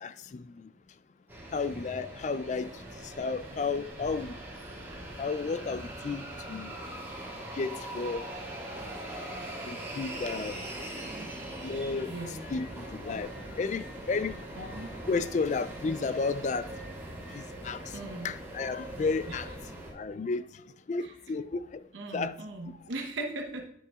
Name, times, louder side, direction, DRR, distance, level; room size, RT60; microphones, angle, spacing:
voice 1, 0.0-0.7 1.5-4.4 5.2-6.7 7.5-8.3 9.6-10.6 11.6-14.8 15.1-16.7 17.3-19.6 19.9-20.5 20.9-21.8 22.1-22.4, left 4 dB, 40° left, 0.3 m, -33 dB
sound 1, 1.3-19.9, right 1 dB, 10° right, 2.8 m, -41 dB
voice 2, 12.1-12.4 14.6-14.9 17.9-18.3 19.3-19.4 21.0-21.1 21.9-23.7, right 2 dB, 80° right, 0.9 m, -38 dB
9.5 x 7.7 x 2.3 m
head